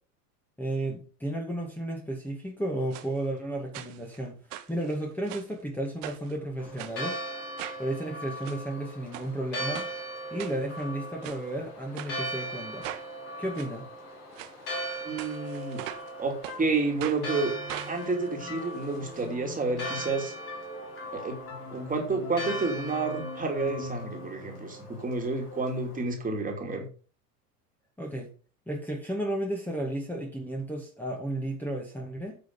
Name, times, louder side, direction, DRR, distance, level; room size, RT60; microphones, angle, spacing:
voice 1, 0.6-4.4 4.7-7.2 7.8-9.9 10.3-12.9 13.4-13.9 28.0-28.3 28.7-32.4, right 1 dB, 5° left, -1 dB, 2.5 m, -33 dB
sound 1, 2.9-3.1 3.7-4.2 4.5-5.5 6.0-6.3 6.8-7.0 7.6-7.8 8.3-8.6 9.1-9.3 9.7-9.9 10.4-10.8 11.2-11.4 11.9-12.1 12.8-13.1 13.5-13.7 14.3-14.5 15.2-16.1 16.4-16.6 17.0-17.2 17.7-19.2 19.5-19.6 19.8-19.9, right 13 dB, 55° right, 1.2 m, -40 dB
Church bell, 6.6-26.0, right 1 dB, 70° left, 4.9 m, -39 dB
voice 2, 15.0-15.8 16.2-17.5 17.9-20.3 21.1-21.4 21.7-26.9, right 3 dB, 15° right, 2 dB, 3.0 m, -30 dB
sound 2, 16.5-26.0, left 4 dB, 30° left, 2.8 m, -44 dB
9.6 x 6.3 x 5.6 m, 0.37 s
figure-of-eight pair, 80°, 46 cm